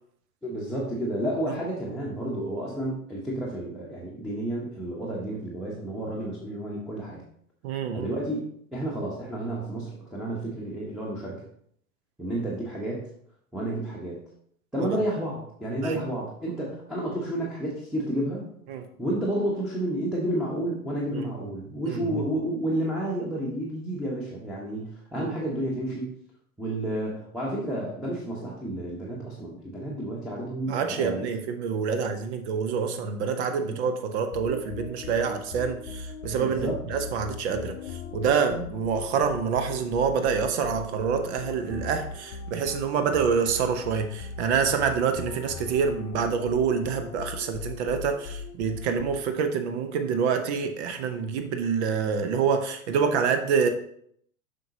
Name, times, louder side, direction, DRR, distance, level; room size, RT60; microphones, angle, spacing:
voice 1, 0.4-7.2 7.9-8.4 8.7-11.4 12.2-13.1 13.5-14.2 14.7-18.5 19.0-26.1 26.6-31.3 31.9-32.0 33.7-33.8 36.4-36.8, right 1 dB, ahead, -5 dB, 1.1 m, -31 dB
voice 2, 7.6-8.1 14.8-15.0 15.8-16.0 18.7-18.8 21.1-21.3 21.9-22.2 25.2-25.3 30.7-37.7 38.1-53.7, right 6 dB, 50° right, 8 dB, 0.9 m, -27 dB
sound 1, 34.3-49.5, left 5 dB, 50° left, 0.6 m, -39 dB
7.5 x 5.3 x 2.8 m, 0.67 s
figure-of-eight pair, 85°, 44 cm